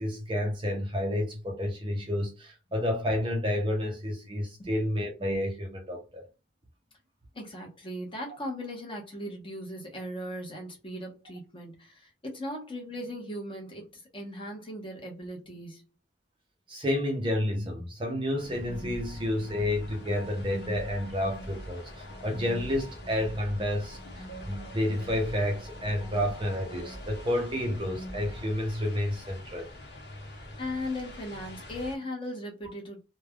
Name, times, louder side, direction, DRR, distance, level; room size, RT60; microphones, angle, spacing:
voice 1, 0.0-6.2 16.7-29.7, left 1 dB, 25° right, 0.6 m, -30 dB
voice 2, 7.3-15.9 30.6-33.0, left 1 dB, 25° left, 0.9 m, -38 dB
sound 1, 18.4-28.5, equal, 80° left, 0.7 m, -44 dB
sound 2, 18.4-32.0, left 1 dB, 55° left, 1.3 m, -46 dB
3.2 x 2.2 x 2.3 m
head